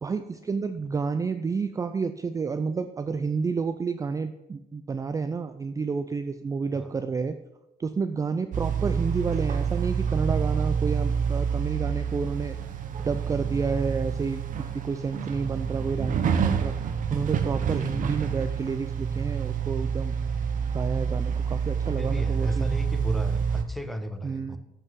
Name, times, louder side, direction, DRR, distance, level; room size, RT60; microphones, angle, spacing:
voice 1, 0.0-7.4 7.8-12.6 13.0-20.1 20.7-22.7 24.2-24.6, right 5 dB, 20° right, 9 dB, 0.4 m, -30 dB
sound 1, 8.5-23.6, right 7 dB, 50° right, 0.9 m, -28 dB
voice 2, 22.0-24.6, equal, ahead, 8 dB, 0.8 m, -35 dB
13.5 x 5.4 x 3.7 m, 0.91 s
cardioid pair, 110°, 17 cm